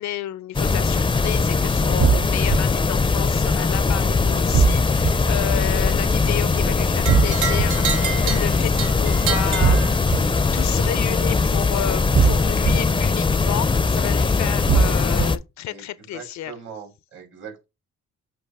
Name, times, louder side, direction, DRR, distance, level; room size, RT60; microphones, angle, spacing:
voice 1, 0.0-16.5, left 12 dB, 70° left, 0.6 m, -31 dB
sound 1, 0.5-15.4, left 4 dB, 15° left, 0.5 m, -20 dB
sound 2, 2.0-2.6 4.5-5.1 7.1-7.6 9.6-10.2 12.1-12.7 14.7-15.3, right 6 dB, 35° right, 0.4 m, -18 dB
sound 3, 7.0-10.4, right 8 dB, 90° right, 1.2 m, -29 dB
voice 2, 15.7-17.6, right 6 dB, 70° right, 4.4 m, -41 dB
8.0 x 2.8 x 4.8 m
cardioid pair, 90°, 30 cm